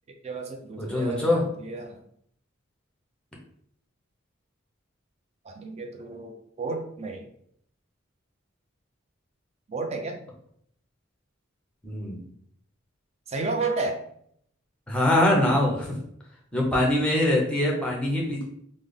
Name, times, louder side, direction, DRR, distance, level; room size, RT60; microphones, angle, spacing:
voice 1, 0.2-2.0 5.5-7.3 9.7-10.2 13.3-14.0, right 3 dB, 35° right, 3 dB, 0.4 m, -32 dB
voice 2, 0.8-1.4 11.8-12.2 14.9-15.9 16.5-18.5, left 1 dB, 5° left, -2 dB, 0.8 m, -23 dB
3.4 x 2.0 x 3.6 m, 0.68 s
head